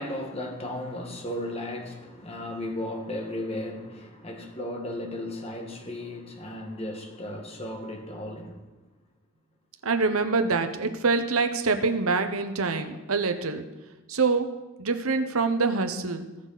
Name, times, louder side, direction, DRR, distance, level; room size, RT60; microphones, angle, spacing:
voice 1, 0.0-8.6, left 1 dB, 30° left, 2 dB, 1.4 m, -35 dB
voice 2, 9.8-13.7 14.1-14.5 14.8-16.2, right 4 dB, 80° right, 8 dB, 1.0 m, -25 dB
18.5 x 6.5 x 4.1 m, 1.1 s
head